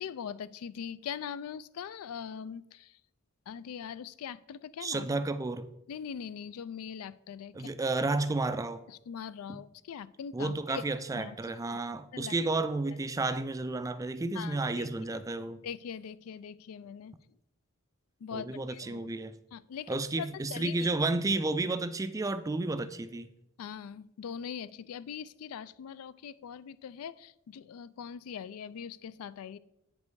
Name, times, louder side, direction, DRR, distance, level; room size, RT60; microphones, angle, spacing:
voice 1, 0.0-3.0 3.5-5.1 5.9-7.7 8.9-10.8 11.2-11.8 12.1-12.3 14.3-14.9 15.6-17.1 18.2-19.0 19.5-20.9 23.6-29.6, left 7 dB, 75° left, 0.3 m, -42 dB
voice 2, 4.8-5.7 7.5-8.8 9.5-9.6 10.3-15.6 18.3-19.3 19.9-23.3, right 2 dB, 15° right, 0.3 m, -32 dB
8.2 x 5.3 x 4.7 m
head